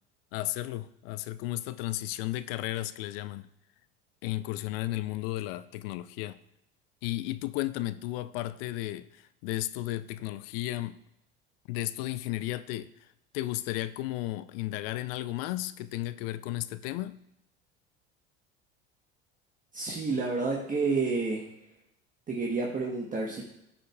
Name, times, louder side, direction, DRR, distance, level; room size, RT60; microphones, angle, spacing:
voice 1, 0.3-3.5 4.2-6.4 7.0-11.0 11.7-13.1 13.3-17.2, left 16 dB, 65° left, 15 dB, 0.5 m, -34 dB
voice 2, 19.7-21.5 22.3-23.4, right 4 dB, 25° right, -1 dB, 1.1 m, -29 dB
13.5 x 5.1 x 2.3 m, 0.82 s
hypercardioid pair, 80°, 32 cm